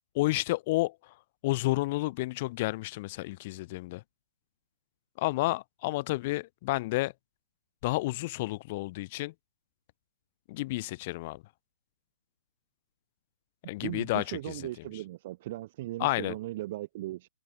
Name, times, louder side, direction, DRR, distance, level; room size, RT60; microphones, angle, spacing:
voice 1, 0.2-1.1 1.4-4.0 5.2-7.1 7.8-9.3 10.5-11.4 13.7-14.7 16.0-16.3, left 20 dB, 35° left, 0.5 m, -31 dB
voice 2, 13.8-17.3, right 16 dB, 40° right, 0.7 m, -37 dB
figure-of-eight pair, 135°, 0 cm